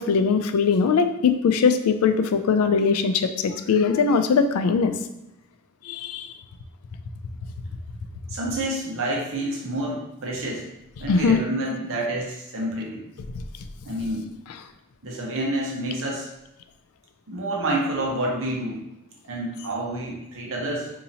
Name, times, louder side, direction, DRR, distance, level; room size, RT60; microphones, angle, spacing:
voice 1, 0.0-4.9 5.8-6.3 11.1-11.4 13.3-13.4, left 5 dB, 75° left, 8 dB, 0.3 m, -21 dB
voice 2, 8.3-10.7 11.0-13.0 13.8-14.3 15.0-16.3 17.3-18.8 19.3-20.9, right 1 dB, 65° right, -2 dB, 0.9 m, -28 dB
4.1 x 2.8 x 2.7 m, 0.88 s
head